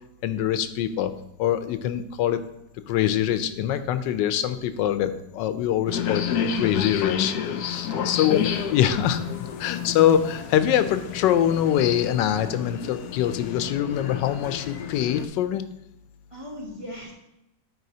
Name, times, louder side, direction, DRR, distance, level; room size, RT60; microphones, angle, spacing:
voice 1, 0.2-1.1 1.4-2.4 2.9-6.2 6.5-9.2 9.6-15.6, left 10 dB, 90° left, 10 dB, 1.2 m, -24 dB
sound 1, 5.9-15.3, left 8 dB, 70° left, 1.0 m, -30 dB
voice 2, 7.8-8.2 16.3-17.1, equal, 20° right, -4 dB, 1.5 m, -39 dB
12.0 x 4.8 x 2.8 m, 0.88 s
omnidirectional pair, 1.9 m